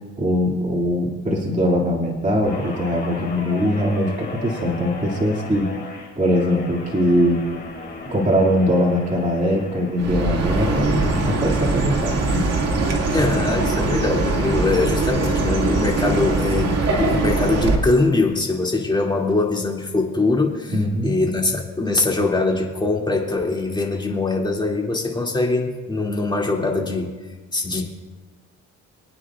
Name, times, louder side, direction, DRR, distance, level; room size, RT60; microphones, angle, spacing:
voice 1, 0.2-5.7 6.2-7.4 8.0-12.5 20.7-21.2, equal, 25° right, -3 dB, 2.3 m, -21 dB
Guitar, 2.4-11.0 11.4-11.7, left 3 dB, 35° left, 3.5 m, -36 dB
Chirp tweet, 10.0-17.8, right 3 dB, 55° right, 2.2 m, -21 dB
voice 2, 13.1-27.1 27.5-27.8, left 3 dB, 15° left, -1 dB, 2.4 m, -22 dB
24.0 x 9.6 x 2.4 m, 1.2 s
cardioid pair, 90°, 30 cm